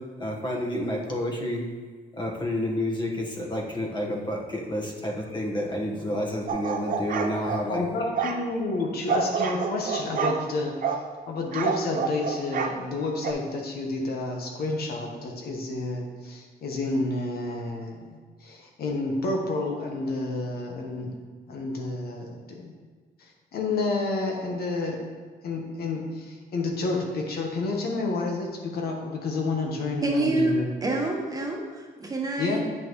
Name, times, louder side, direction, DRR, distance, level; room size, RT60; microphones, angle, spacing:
voice 1, 0.0-1.7 2.1-7.8, left 1 dB, 25° left, -1 dB, 1.3 m, -30 dB
sound 1, 6.5-7.6 8.1-8.4 9.1-10.4 10.8-11.0 11.5-12.7 13.2-13.3, right 6 dB, 55° right, 0.7 m, -28 dB
voice 2, 7.7-11.0 11.3-18.0 18.4-21.2 21.5-22.7 23.5-25.0 25.4-30.7 32.4-32.6, left 3 dB, 70° left, 1 dB, 1.2 m, -30 dB
voice 3, 30.0-32.7, right 2 dB, 20° right, -1 dB, 1.2 m, -27 dB
8.8 x 5.9 x 3.1 m, 1.5 s
cardioid pair, 115°, 17 cm